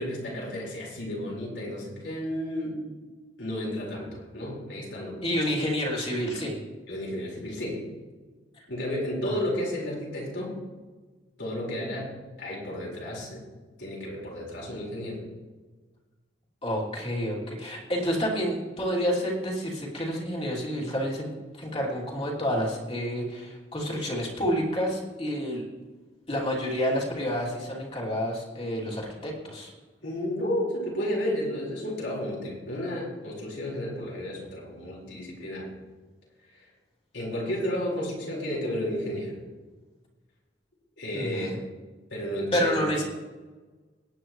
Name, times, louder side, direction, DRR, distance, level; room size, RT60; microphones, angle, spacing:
voice 1, 0.0-2.8 3.4-5.4 6.9-7.8 8.7-10.5 11.4-13.4 13.8-15.2 30.0-35.7 36.5-36.7 37.1-39.4 41.0-41.6 42.1-42.8, equal, 70° left, -4 dB, 4.6 m, -32 dB
voice 2, 5.2-6.6 16.6-25.6 26.3-29.7 41.1-41.6 42.5-43.0, equal, 30° left, -4 dB, 3.0 m, -29 dB
18.5 x 9.5 x 3.2 m, 1.3 s
head